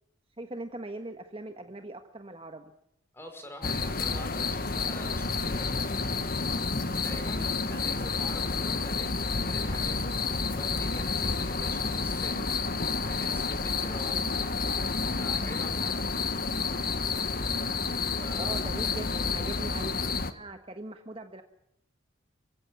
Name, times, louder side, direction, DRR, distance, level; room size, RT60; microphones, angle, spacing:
voice 1, 0.4-2.6 7.8-8.1 18.4-20.0 20.3-21.4, right 2 dB, 30° right, 6 dB, 1.4 m, -40 dB
voice 2, 3.1-5.9 7.0-9.1 9.4-10.1 10.5-12.8 13.0-14.3 15.1-16.2 18.1-18.7, left 1 dB, 10° left, 6 dB, 5.1 m, -45 dB
sound 1, 3.6-20.3, left 4 dB, 45° left, 1.4 m, -30 dB
29.0 x 16.0 x 10.0 m, 0.78 s
head